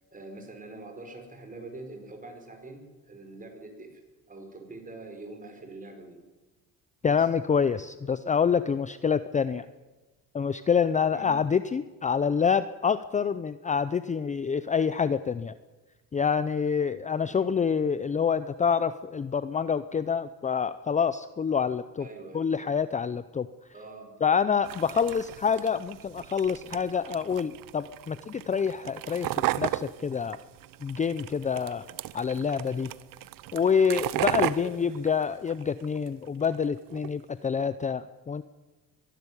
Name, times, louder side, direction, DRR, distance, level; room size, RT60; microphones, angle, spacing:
voice 1, 0.1-4.0 4.3-6.2 7.0-7.3 11.1-11.3 17.3-17.6 22.0-22.5 23.7-24.1 34.5-35.0, right 2 dB, 25° right, 4 dB, 5.3 m, -44 dB
voice 2, 7.0-9.6 10.3-15.5 16.1-22.0 22.3-23.5 24.2-30.4 30.8-31.8 32.1-32.9 33.5-38.4, left 6 dB, 20° left, 14 dB, 0.6 m, -27 dB
sound 1, 24.6-36.1 36.4-37.1, right 15 dB, 70° right, 0.9 m, -35 dB
23.0 x 12.0 x 9.9 m, 1.2 s
cardioid pair, 115°, 35 cm